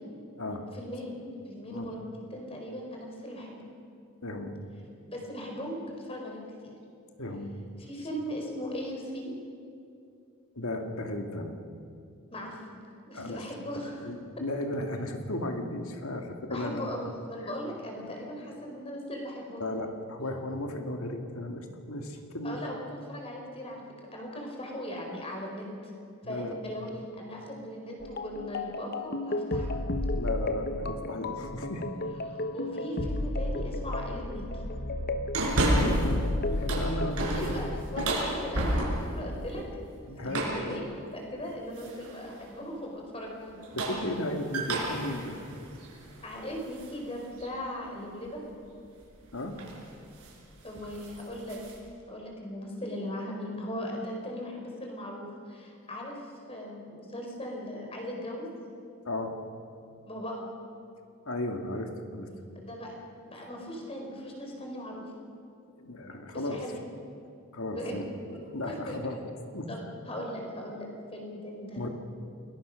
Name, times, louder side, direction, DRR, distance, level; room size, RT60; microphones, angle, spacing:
voice 1, 0.7-3.6 5.1-6.5 7.8-9.3 12.3-12.8 13.0-14.1 16.5-19.7 22.4-23.8 24.1-25.9 26.2-26.9 27.2-29.7 32.3-34.6 37.3-37.7 37.9-39.6 40.1-43.8 46.2-48.4 50.6-51.6 52.1-56.2 56.5-58.5 60.1-60.5 62.5-63.0 63.3-65.1 66.3-66.7 67.7-68.0 68.3-69.0 69.7-69.8 70.1-71.9, equal, 25° left, 0 dB, 4.5 m, -38 dB
voice 2, 4.2-4.6 7.2-7.5 10.6-11.6 13.1-13.4 14.0-16.9 19.6-22.6 26.2-26.5 26.9-27.0 30.2-31.9 35.8-36.2 36.4-37.7 40.1-40.5 43.7-45.4 49.3-49.6 59.1-59.4 61.3-62.3 65.8-66.6 67.5-68.0 68.5-69.2 69.5-69.7 71.8-71.9, left 1 dB, 70° left, 4 dB, 2.2 m, -35 dB
sound 1, 28.0-38.2, left 1 dB, 45° left, 0.9 m, -33 dB
sound 2, 35.3-36.2 36.5-39.2 40.3-40.7 41.8-42.2 43.5-46.9 47.4-47.5 49.0-49.2 49.6-49.8 50.1-50.4 50.7-51.8, right 1 dB, 85° right, 6.4 m, -31 dB
29.0 x 21.0 x 6.5 m, 2.5 s
head